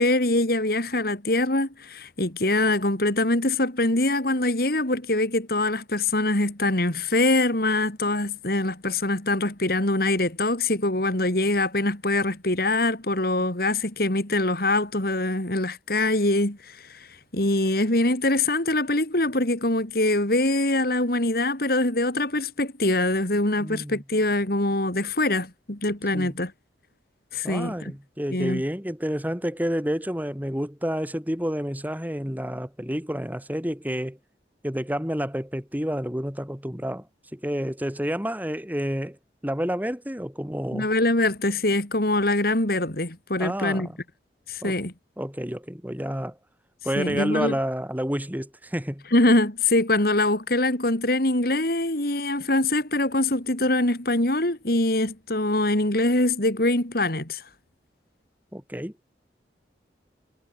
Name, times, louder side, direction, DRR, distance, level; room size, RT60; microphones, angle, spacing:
voice 1, 0.0-17.0 17.3-26.5 27.3-27.9 28.3-28.6 40.7-43.9 44.5-44.9 46.9-47.6 49.1-57.4, left 2 dB, 55° left, 3.5 m, -23 dB
voice 2, 23.6-24.0 26.1-26.3 27.4-34.2 34.6-37.1 37.3-39.2 39.4-40.9 43.4-44.0 44.6-44.7 45.2-46.4 46.8-49.0 58.5-58.9, equal, 10° right, 3.9 m, -29 dB
head